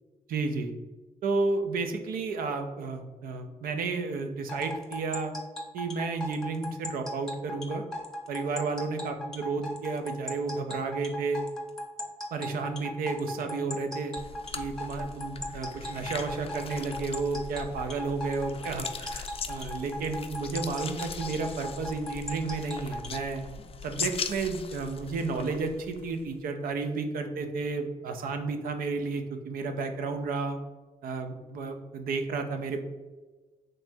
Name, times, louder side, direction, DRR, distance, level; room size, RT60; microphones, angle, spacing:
voice 1, 0.3-0.7 1.2-5.3 5.7-7.8 8.3-11.4 12.3-14.1 14.5-23.4 23.8-30.6 31.0-32.8, right 4 dB, 75° right, 6 dB, 0.5 m, -32 dB
sound 1, 4.5-23.2, left 1 dB, 5° left, 1.0 m, -37 dB
sound 2, 14.2-26.4, left 5 dB, 40° left, 0.4 m, -40 dB
4.2 x 3.2 x 2.6 m, 1.3 s
supercardioid pair, 50°, 15 cm